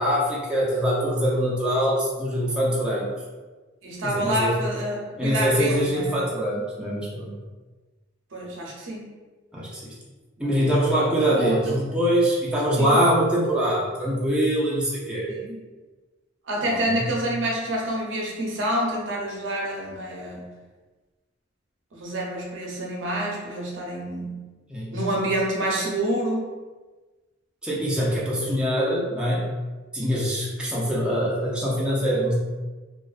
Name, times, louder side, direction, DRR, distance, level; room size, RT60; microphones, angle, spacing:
voice 1, 0.0-3.1 4.0-4.5 5.2-7.3 9.5-9.9 10.4-15.3 16.6-17.0 24.7-25.0 27.6-29.4 29.9-32.3, equal, 5° right, -7 dB, 0.4 m, -23 dB
voice 2, 3.8-6.2 8.3-9.1 10.4-10.9 11.2-11.8 12.8-13.0 15.3-15.6 16.5-20.5 21.9-24.4 24.9-26.5, right 1 dB, 70° right, -2 dB, 0.6 m, -28 dB
2.5 x 2.3 x 2.3 m, 1.2 s
head